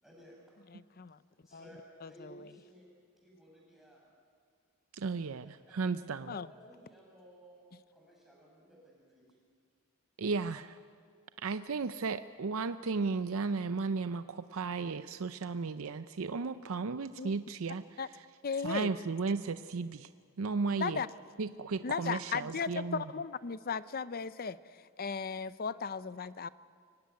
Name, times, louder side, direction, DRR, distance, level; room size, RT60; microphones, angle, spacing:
voice 1, 0.0-0.6 1.3-2.9 3.2-4.0 5.7-6.0 6.3-7.6 7.9-9.4, right 1 dB, ahead, -3 dB, 6.1 m, -57 dB
voice 2, 0.7-1.2 1.5-1.6 2.0-2.3 6.3-6.5 17.2-17.4 18.0-18.1 18.4-18.9 20.8-21.1 21.8-26.5, left 5 dB, 45° left, 15 dB, 0.6 m, -36 dB
voice 3, 4.9-6.3 10.2-10.8 11.4-17.8 18.6-20.1 20.4-21.0 21.4-23.0, right 4 dB, 70° right, 11 dB, 0.6 m, -34 dB
23.5 x 17.0 x 9.5 m, 2.1 s
head